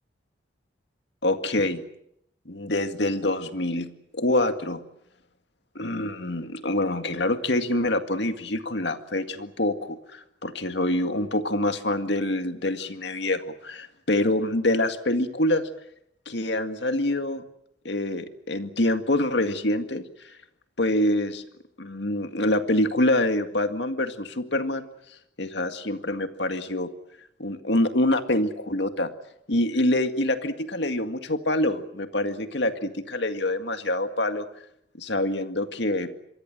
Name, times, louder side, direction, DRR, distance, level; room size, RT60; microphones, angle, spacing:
voice 1, 1.2-1.8 2.5-4.8 5.8-15.7 16.3-17.4 17.8-20.0 20.8-21.4 21.8-24.8 25.4-26.9 27.4-29.1 29.5-34.5 35.0-36.1, left 1 dB, 70° left, 8 dB, 2.0 m, -26 dB
27.5 x 23.5 x 7.7 m, 0.74 s
head